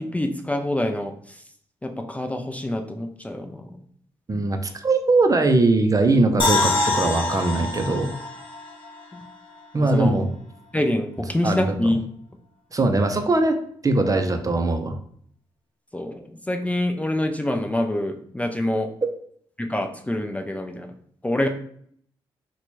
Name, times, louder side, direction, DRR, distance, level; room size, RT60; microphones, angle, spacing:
voice 1, 0.0-1.4 1.8-3.7 4.3-4.5 9.1-9.2 9.8-10.2 10.7-12.0 15.9-18.9 19.6-20.9 21.2-21.5, left 1 dB, 15° left, 4 dB, 0.4 m, -26 dB
voice 2, 4.3-8.1 9.7-10.3 11.4-11.6 12.7-13.6 13.8-15.0, right 2 dB, 30° right, 5 dB, 0.6 m, -20 dB
sound 1, 6.4-9.6 9.9-10.0, left 2 dB, 55° left, 1.0 m, -26 dB
2.9 x 2.2 x 4.0 m, 0.62 s
supercardioid pair, 45°, 11 cm